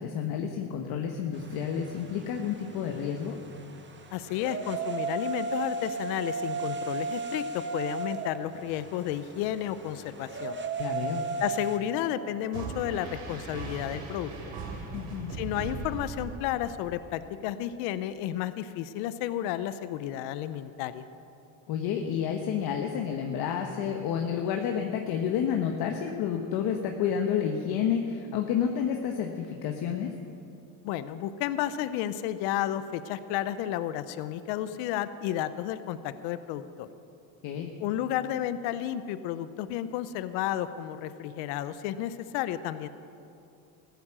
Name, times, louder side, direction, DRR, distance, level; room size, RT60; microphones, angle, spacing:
voice 1, 0.0-3.4 10.8-11.2 14.9-15.3 21.7-30.1 37.4-37.7, left 8 dB, 70° left, 3 dB, 1.2 m, -30 dB
sound 1, 1.3-11.8, right 4 dB, 30° right, 1.5 m, -35 dB
voice 2, 4.1-7.4 7.7-10.6 11.4-14.3 15.3-21.0 30.8-36.9 37.8-42.9, left 12 dB, 85° left, 13 dB, 0.7 m, -32 dB
sound 2, 12.5-16.8, right 4 dB, 85° right, 3.0 m, -38 dB
14.5 x 10.5 x 7.5 m, 2.6 s
supercardioid pair, 90°, 39 cm